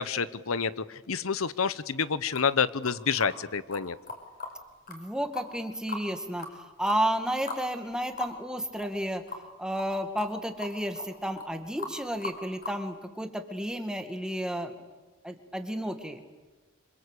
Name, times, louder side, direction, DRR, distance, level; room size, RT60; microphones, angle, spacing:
voice 1, 0.0-4.0, left 6 dB, 85° left, 16 dB, 0.9 m, -28 dB
sound 1, 2.3-2.5 2.8-3.3 3.7-3.8 4.1-4.5 4.9-5.0 5.3-6.1 6.4-6.5 6.9-7.0 7.5-7.6 7.9-8.0 8.2-8.3 8.8-9.0 9.3-9.4 9.8-9.9 10.2-10.3 10.6-11.1 11.4-11.5 11.8-12.0 12.2-12.8, left 3 dB, 45° left, 5.2 m, -38 dB
voice 2, 4.9-14.7 15.2-16.2, right 1 dB, 5° right, 6 dB, 2.1 m, -32 dB
27.0 x 26.5 x 8.4 m, 1.2 s
head